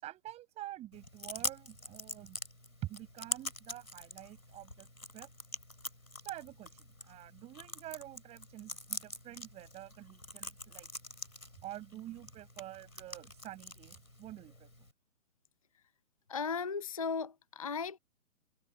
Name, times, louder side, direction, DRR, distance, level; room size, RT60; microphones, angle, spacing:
voice 1, 0.0-2.4 2.8-4.9 5.1-5.3 6.2-10.9 11.6-14.7, right 14 dB, 15° right, 7.7 m, -47 dB
Chewing mastication, 0.9-14.9, left 1 dB, 85° left, 7.0 m, -45 dB
voice 2, 16.3-18.0, left 5 dB, 25° left, 0.5 m, -36 dB
figure-of-eight pair, 135°, 41 cm